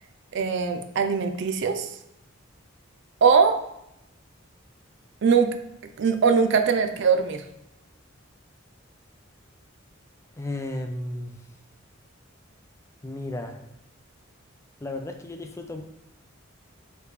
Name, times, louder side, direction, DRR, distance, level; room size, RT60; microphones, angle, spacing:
voice 1, 0.3-1.9 3.2-3.6 5.2-5.6 6.0-7.4, right 5 dB, 60° right, 7 dB, 0.4 m, -21 dB
voice 2, 10.4-11.3 13.0-13.6 14.8-15.8, left 1 dB, 15° left, 5 dB, 0.3 m, -33 dB
4.7 x 3.2 x 3.2 m, 0.82 s
head